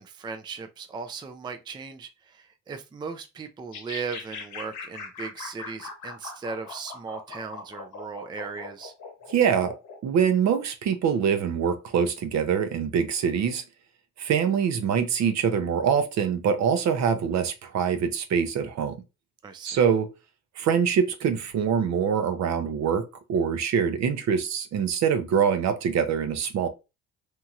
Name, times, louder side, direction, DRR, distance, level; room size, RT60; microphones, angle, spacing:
voice 1, 0.0-8.9 19.4-19.8, right 5 dB, 15° right, 0.3 m, -37 dB
sound 1, 3.7-10.0, left 4 dB, 75° left, 1.0 m, -40 dB
voice 2, 9.3-9.7 10.0-13.6 14.2-18.9 19.6-20.1 20.6-26.7, right 7 dB, 65° right, 0.6 m, -24 dB
2.9 x 2.7 x 2.3 m
cardioid pair, 90°, 30 cm